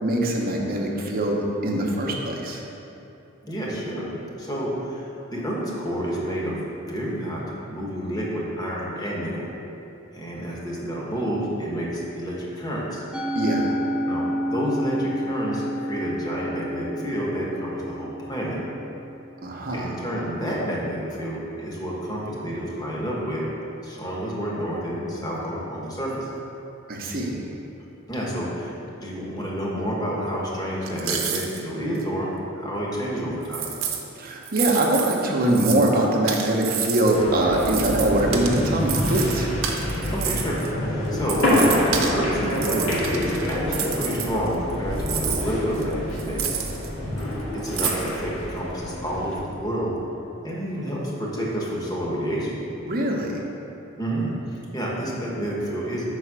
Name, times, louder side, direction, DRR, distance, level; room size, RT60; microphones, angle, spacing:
voice 1, 0.0-2.6 13.4-13.8 19.4-19.8 26.9-27.4 34.2-39.5 52.9-53.4, right 1 dB, 45° right, 0 dB, 0.8 m, -23 dB
voice 2, 3.4-4.1 4.4-6.6 6.9-7.4 7.7-9.5 10.1-13.0 14.1-18.6 19.7-23.4 23.8-26.3 28.1-33.7 40.1-46.6 47.2-49.9 50.4-52.6 54.0-56.1, equal, 20° left, -5 dB, 1.2 m, -29 dB
Musical instrument, 13.1-19.5, equal, 5° right, 0.3 m, -30 dB
sound 1, 30.8-31.6 31.9-32.0 33.4-34.0 34.4-35.9 36.3-37.2 37.5-40.7 41.1-42.1 42.5-44.7 45.0-46.9 47.2-47.3 47.6-48.1, right 8 dB, 80° right, 0.7 m, -29 dB
sound 2, 37.1-49.4, left 1 dB, 90° left, 1.5 m, -27 dB
5.5 x 4.1 x 6.0 m, 2.9 s
head